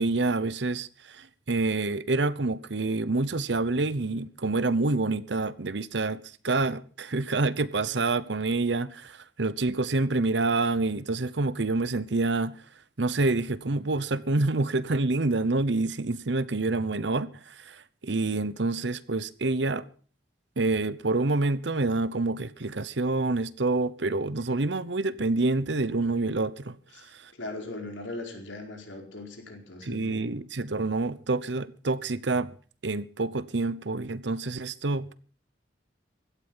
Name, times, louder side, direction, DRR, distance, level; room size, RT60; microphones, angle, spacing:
voice 1, 0.0-12.6 13.0-19.8 20.6-26.8 27.1-27.3 29.9-32.5 32.8-35.2, right 3 dB, 75° right, 0.9 m, -27 dB
voice 2, 26.9-30.3, left 2 dB, 85° left, 4.6 m, -40 dB
16.5 x 12.5 x 5.6 m
head